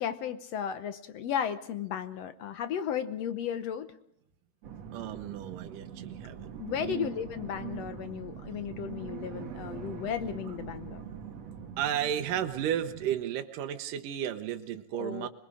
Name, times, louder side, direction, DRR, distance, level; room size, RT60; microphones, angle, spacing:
voice 1, 0.0-3.9 6.6-11.0 15.0-15.3, left 9 dB, 65° left, 11 dB, 1.7 m, -34 dB
sound 1, 4.6-13.2, right 8 dB, 55° right, 2.8 m, -43 dB
voice 2, 4.9-6.5 6.8-7.1 11.8-15.3, right 10 dB, 80° right, 6 dB, 2.6 m, -33 dB
26.5 x 21.0 x 4.9 m, 0.73 s
omnidirectional pair, 3.8 m